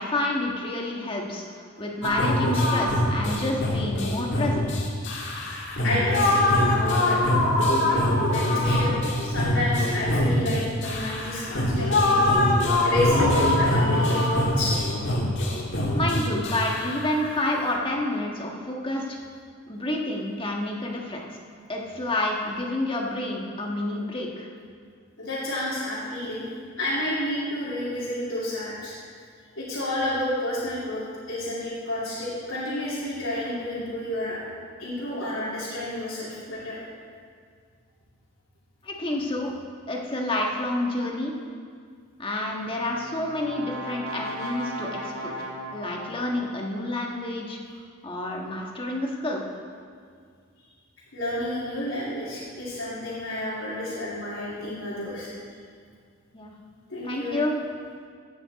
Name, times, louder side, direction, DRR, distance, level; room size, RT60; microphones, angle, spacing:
voice 1, 0.0-4.7 15.9-19.2 19.7-21.2 21.7-24.5 38.8-39.5 39.9-41.3 42.2-45.4 45.7-47.6 48.0-49.4 56.3-56.5 57.0-57.5, left 1 dB, 25° left, -1 dB, 1.4 m, -29 dB
sound 1, 2.0-17.8, left 1 dB, 60° left, 1.7 m, -24 dB
voice 2, 5.8-7.2 7.7-8.9 9.2-12.2 12.8-14.8 25.2-26.4 26.8-28.9 29.6-34.4 34.8-36.8 51.1-55.3 56.9-57.4, left 1 dB, 75° left, -9 dB, 2.7 m, -30 dB
sound 2, 13.2-17.9, equal, 60° right, 1.9 m, -35 dB
Brass instrument, 42.5-46.7, equal, 85° right, 1.7 m, -37 dB
15.5 x 9.0 x 4.1 m, 2.1 s
head